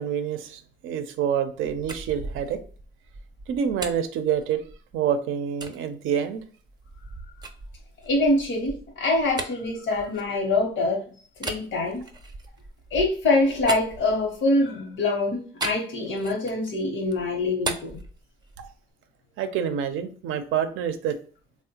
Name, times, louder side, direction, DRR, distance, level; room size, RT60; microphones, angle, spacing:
voice 1, 0.0-2.6 3.5-4.6 4.9-6.4 18.6-18.7 19.4-21.2, right 8 dB, 85° right, 8 dB, 0.5 m, -27 dB
sound 1, 1.6-5.0 5.6-5.8 6.4-10.8 11.4-14.6 15.6-16.7 17.0-18.8, right 3 dB, 20° right, 0.5 m, -38 dB
voice 2, 8.0-11.0 11.4-12.0 12.9-18.0, left 2 dB, 70° left, 0 dB, 0.9 m, -24 dB
3.3 x 2.1 x 2.8 m, 0.42 s
cardioid pair, 90°, 20 cm